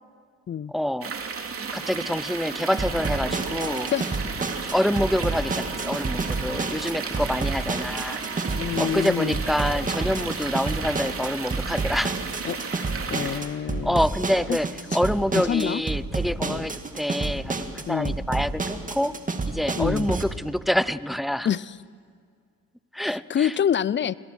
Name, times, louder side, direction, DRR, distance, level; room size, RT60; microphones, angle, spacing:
voice 1, 0.7-1.1 1.7-3.9 4.7-8.2 8.8-12.1 13.2-13.4 13.8-19.1 19.5-21.5 22.9-23.5, equal, ahead, 17 dB, 0.6 m, -26 dB
sound 1, 1.0-13.4, right 5 dB, 45° right, 3.3 m, -33 dB
sound 2, 2.8-20.2, right 3 dB, 25° right, 2.0 m, -30 dB
voice 2, 8.5-9.4 12.4-12.6 13.1-14.0 14.5-14.6 15.5-15.8 16.4-16.6 17.9-18.2 19.8-20.1 21.4-21.6 23.3-24.1, left 9 dB, 40° left, 20 dB, 0.7 m, -26 dB
29.0 x 22.0 x 6.2 m, 2.1 s
cardioid pair, 90°, 30 cm